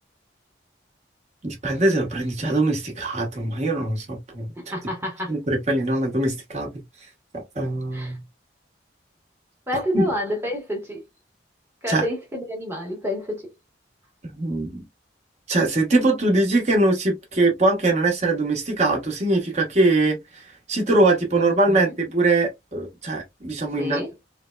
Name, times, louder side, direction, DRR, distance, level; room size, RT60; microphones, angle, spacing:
voice 1, 1.4-4.5 5.3-6.7 7.3-8.2 9.9-10.0 11.9-12.0 14.4-14.7 15.5-20.4 20.7-24.0, right 2 dB, 40° right, 1.0 m, -22 dB
voice 2, 4.6-5.4 7.9-8.2 9.7-11.0 11.8-13.5 21.4-21.9 23.8-24.1, left 1 dB, 15° right, 1.0 m, -29 dB
3.4 x 2.1 x 2.2 m
head